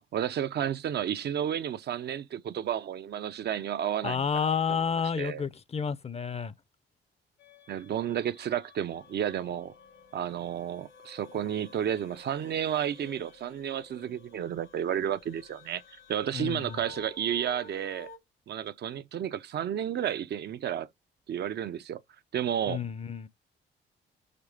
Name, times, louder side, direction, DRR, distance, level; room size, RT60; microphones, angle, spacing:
voice 1, 0.0-4.5 5.2-5.4 7.7-9.7 10.1-15.8 16.1-18.1 18.5-20.9 21.3-22.0 22.3-22.8, right 9 dB, 55° right, 0.6 m, -32 dB
voice 2, 4.0-6.5 16.3-16.8 22.7-23.3, left 6 dB, 30° left, 0.6 m, -30 dB
sound 1, 7.4-18.2, left 4 dB, 70° left, 1.5 m, -53 dB
6.7 x 3.2 x 4.9 m
cardioid pair, 90°, 20 cm